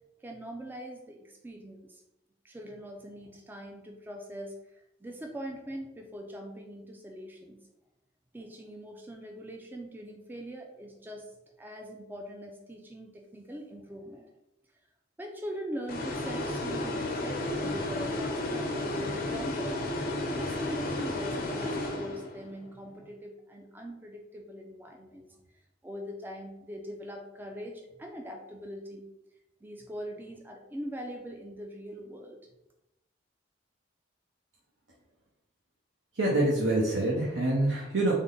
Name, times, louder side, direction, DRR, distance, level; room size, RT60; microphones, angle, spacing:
voice 1, 0.2-2.0 2.4-7.6 8.3-11.3 11.6-14.3 15.2-19.8 20.3-25.4 25.8-29.1 29.6-32.4, equal, 10° right, 2 dB, 0.3 m, -42 dB
sound 1, 15.9-22.6, left 1 dB, 50° left, 0.6 m, -32 dB
voice 2, 36.2-38.1, right 1 dB, 85° right, -4 dB, 0.8 m, -26 dB
3.5 x 2.1 x 3.7 m, 0.88 s
head